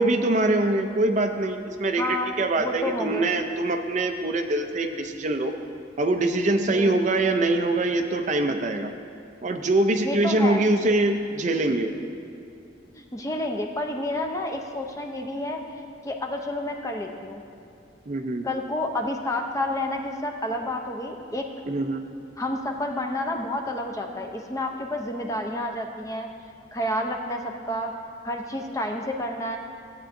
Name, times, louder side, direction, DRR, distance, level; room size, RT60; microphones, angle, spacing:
voice 1, 0.0-5.5 6.0-8.9 9.4-11.9 18.1-18.5 21.7-22.0, right 2 dB, 40° right, 6 dB, 0.4 m, -23 dB
voice 2, 2.0-3.3 6.7-7.0 10.0-10.7 12.9-15.6 16.0-17.4 18.4-21.5 22.4-26.3 26.7-27.9 28.2-29.6, left 1 dB, 15° left, 3 dB, 0.6 m, -30 dB
16.0 x 8.7 x 2.6 m, 2.5 s
head